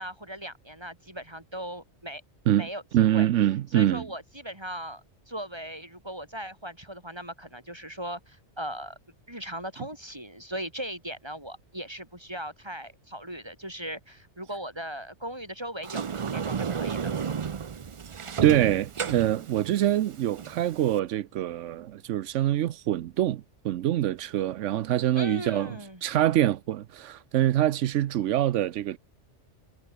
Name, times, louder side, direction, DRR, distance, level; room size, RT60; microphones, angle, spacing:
voice 1, 0.0-2.2 2.5-3.3 3.7-9.0 9.3-17.0 25.2-26.0, right 1 dB, 20° right, 7.2 m, -38 dB
voice 2, 2.9-4.1 18.4-25.7 26.0-29.0, right 12 dB, 85° right, 1.0 m, -25 dB
Sliding door, 15.8-21.0, right 6 dB, 40° right, 0.4 m, -33 dB
omnidirectional pair, 1.2 m